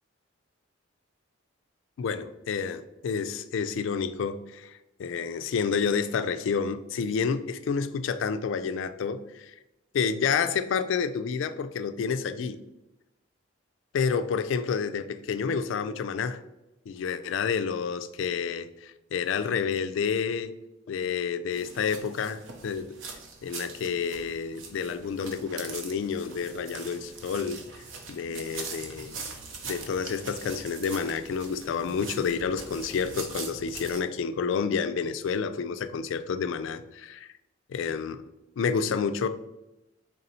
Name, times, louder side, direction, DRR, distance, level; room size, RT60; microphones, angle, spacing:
voice 1, 2.0-9.5 9.9-12.6 13.9-16.4 16.9-20.6 20.9-22.9 23.4-29.2 29.6-37.3 37.7-38.3 38.6-39.3, left 6 dB, 75° left, 10 dB, 0.3 m, -29 dB
sound 1, 21.5-34.0, right 4 dB, 75° right, 0.7 m, -42 dB
3.6 x 2.7 x 4.1 m, 0.94 s
head